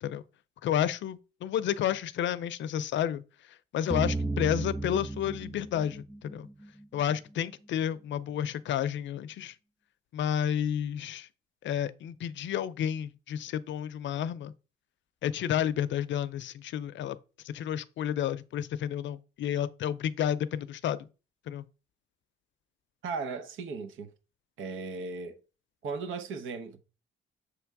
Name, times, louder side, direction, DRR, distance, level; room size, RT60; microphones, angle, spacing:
voice 1, 0.6-6.5 6.9-9.6 10.1-11.3 11.6-14.5 15.2-17.2 17.4-21.1 21.5-21.6, left 10 dB, 70° left, 0.6 m, -31 dB
sound 1, 3.9-6.8, right 2 dB, ahead, 0.3 m, -34 dB
voice 2, 23.0-24.1 24.6-25.4 25.8-26.8, right 4 dB, 80° right, 1.1 m, -36 dB
7.0 x 3.5 x 4.7 m
cardioid pair, 90°, 20 cm